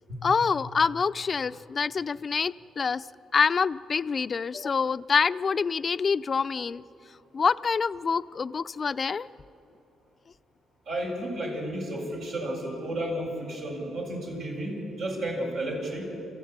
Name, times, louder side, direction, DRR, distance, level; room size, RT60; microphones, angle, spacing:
voice 1, 0.2-3.1 3.3-6.8 7.3-9.3, left 5 dB, 45° left, 14 dB, 0.5 m, -26 dB
voice 2, 10.9-16.1, right 1 dB, 75° right, -2 dB, 7.0 m, -32 dB
28.0 x 15.0 x 9.0 m, 2.9 s
cardioid pair, 70°, 0 cm